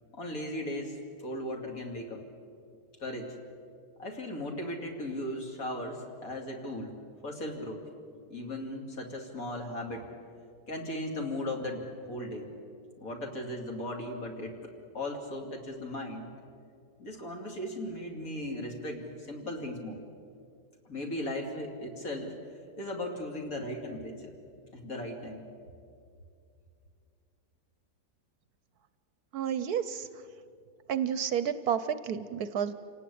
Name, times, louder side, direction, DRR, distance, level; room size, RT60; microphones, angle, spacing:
voice 1, 0.1-2.2 3.0-3.3 4.0-6.9 7.2-7.8 8.3-10.1 10.7-12.5 13.0-16.3 17.0-20.0 20.9-22.3 22.8-24.3 24.7-25.5, left 1 dB, 55° left, 1 dB, 3.4 m, -37 dB
voice 2, 29.3-30.1 30.9-32.7, right 8 dB, 65° right, 13 dB, 1.2 m, -30 dB
27.5 x 18.5 x 8.6 m, 2.4 s
omnidirectional pair, 1.8 m